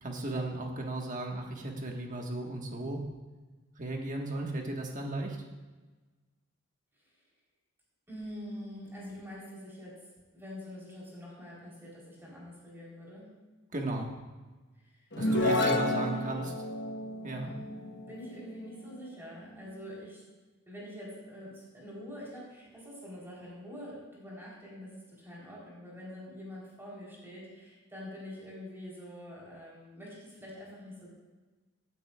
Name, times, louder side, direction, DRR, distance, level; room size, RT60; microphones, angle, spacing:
voice 1, 0.0-3.0 3.8-5.4 13.7-14.1 15.1-16.5 17.2-17.5, right 2 dB, 40° right, 1 dB, 1.5 m, -35 dB
voice 2, 8.1-10.0 10.3-13.3 14.8-15.0 15.4-16.6 17.3-17.7 18.1-20.2 20.7-31.1, equal, 10° right, -6 dB, 3.6 m, -45 dB
sound 1, 15.1-18.7, left 1 dB, 55° left, 1.1 m, -31 dB
16.5 x 9.3 x 2.4 m, 1.3 s
head